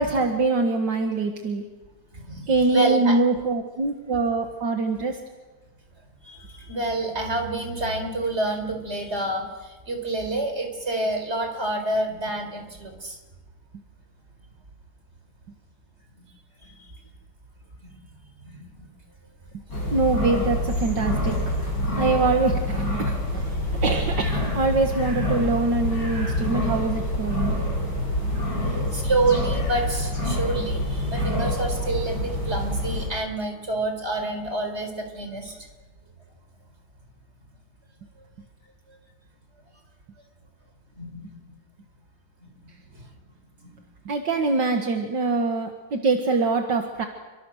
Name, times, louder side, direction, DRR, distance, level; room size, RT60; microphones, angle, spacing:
voice 1, 0.0-1.6 2.5-5.2 19.9-21.7 22.0-27.5 44.1-47.1, right 3 dB, 70° right, 3 dB, 2.3 m, -24 dB
voice 2, 2.1-3.2 6.2-13.2 16.6-16.7 18.4-18.9 28.9-35.6 41.0-41.2 42.4-42.5, right 2 dB, 35° right, 4 dB, 4.9 m, -28 dB
sound 1, 19.7-33.1, left 1 dB, 65° left, 8.6 m, -26 dB
30.0 x 25.0 x 6.5 m, 1.2 s
omnidirectional pair, 2.0 m